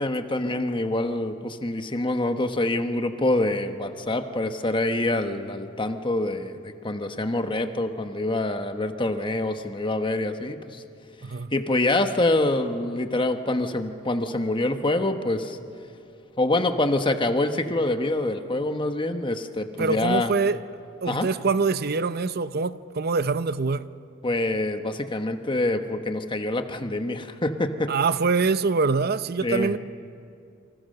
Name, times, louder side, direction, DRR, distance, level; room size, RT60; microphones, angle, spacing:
voice 1, 0.0-10.8 11.5-15.6 16.4-20.3 21.1-21.3 24.2-27.9 29.4-29.7, left 2 dB, 25° left, 1.2 m, -26 dB
voice 2, 19.8-20.6 21.0-23.9 27.9-29.8, right 4 dB, 50° right, 0.7 m, -24 dB
29.0 x 25.5 x 6.6 m
head